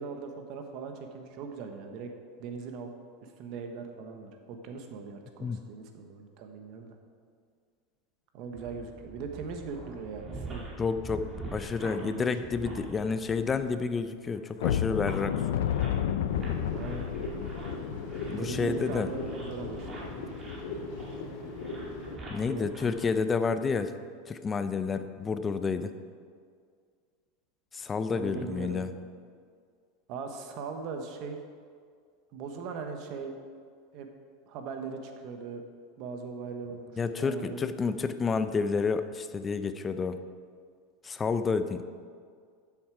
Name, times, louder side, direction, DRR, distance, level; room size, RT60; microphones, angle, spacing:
voice 1, 0.0-2.1 2.4-2.9 3.2-7.0 8.3-10.7 11.7-12.5 16.7-17.1 18.3-20.1 20.4-20.5 22.3-22.7 28.1-28.9 30.1-31.4 32.3-33.3 33.9-34.1 34.5-35.6 36.0-37.6, right 5 dB, 50° right, 5 dB, 1.2 m, -40 dB
sound 1, 8.6-23.3, right 2 dB, 25° right, 2.5 m, -45 dB
voice 2, 10.8-15.4 18.3-19.1 22.3-23.9 24.3-25.9 27.7-29.0 37.0-40.2 41.0-41.8, left 5 dB, 20° left, 11 dB, 0.6 m, -30 dB
sound 2, 14.6-21.3 21.7-21.8 22.3-22.4 22.9-23.1, left 9 dB, 85° left, 0.5 m, -33 dB
sound 3, 16.3-22.2, left 3 dB, 60° left, 2.2 m, -39 dB
12.5 x 7.2 x 4.8 m, 2.1 s
supercardioid pair, 135°, 0 cm